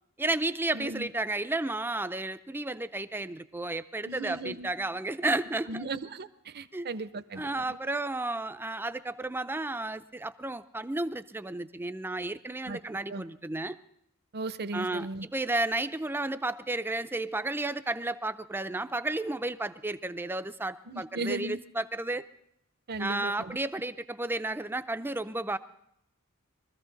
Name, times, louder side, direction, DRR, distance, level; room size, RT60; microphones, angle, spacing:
voice 1, 0.2-5.8 6.7-6.9 7.4-13.8 14.7-22.2 23.0-25.6, right 2 dB, 10° right, 11 dB, 0.5 m, -32 dB
voice 2, 0.7-1.1 4.1-4.7 5.7-7.8 12.7-12.8 13.1-13.2 14.3-15.3 20.9-21.6 22.9-23.6, right 3 dB, 50° right, 12 dB, 0.7 m, -37 dB
23.0 x 14.5 x 4.0 m, 0.77 s
head